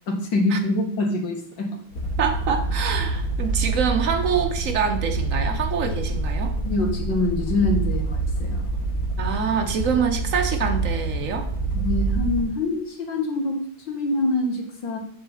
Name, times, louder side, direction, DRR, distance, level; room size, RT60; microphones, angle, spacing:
voice 1, 0.1-1.8 6.7-8.7 11.7-15.0, left 2 dB, 60° left, 3 dB, 2.3 m, -25 dB
sound 1, 1.9-12.5, right 2 dB, 40° left, 2.7 m, -26 dB
voice 2, 2.2-6.5 9.2-11.5, right 6 dB, 45° right, 5 dB, 1.3 m, -25 dB
7.7 x 4.8 x 7.1 m, 0.63 s
omnidirectional pair, 2.3 m